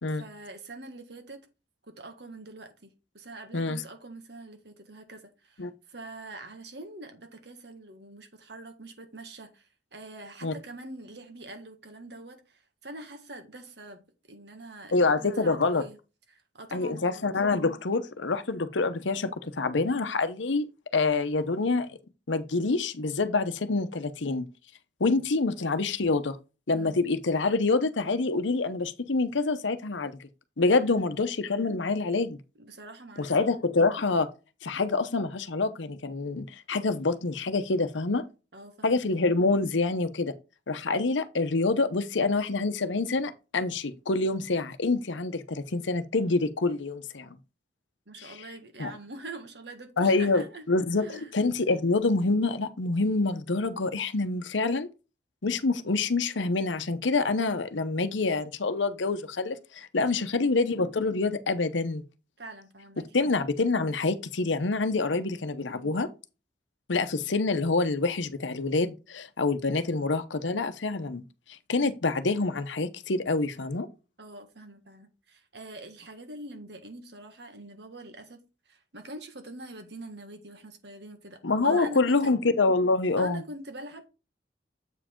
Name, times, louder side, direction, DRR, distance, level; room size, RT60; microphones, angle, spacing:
voice 1, 0.1-1.5 1.9-14.0 14.3-16.0 16.3-17.2 26.7-27.0 30.8-31.2 32.6-33.4 38.5-39.0 48.1-50.7 51.0-51.3 60.0-60.5 62.4-63.2 65.1-65.3 74.2-82.3 83.2-84.1, right 2 dB, 70° right, 1.7 m, -44 dB
voice 2, 14.9-15.8 16.7-20.7 20.9-21.9 22.3-24.4 25.0-26.4 26.7-30.3 30.6-32.4 33.2-34.3 34.6-38.2 38.8-40.3 40.7-47.4 48.2-48.3 48.8-48.9 50.0-54.9 55.4-62.0 63.1-66.1 66.9-71.2 71.7-73.9 81.4-83.4, left 3 dB, 90° left, 0.8 m, -26 dB
7.9 x 5.0 x 3.7 m
head